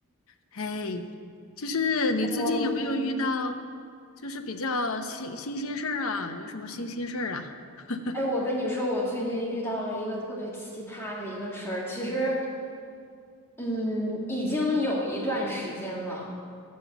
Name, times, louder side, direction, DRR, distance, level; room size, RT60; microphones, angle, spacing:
voice 1, 0.5-1.0 1.6-3.6 4.2-8.2, left 3 dB, 65° left, 6 dB, 0.8 m, -30 dB
voice 2, 2.3-2.9 8.1-12.4 13.6-16.3, equal, 10° left, -4 dB, 1.6 m, -30 dB
11.0 x 7.4 x 8.2 m, 2.2 s
head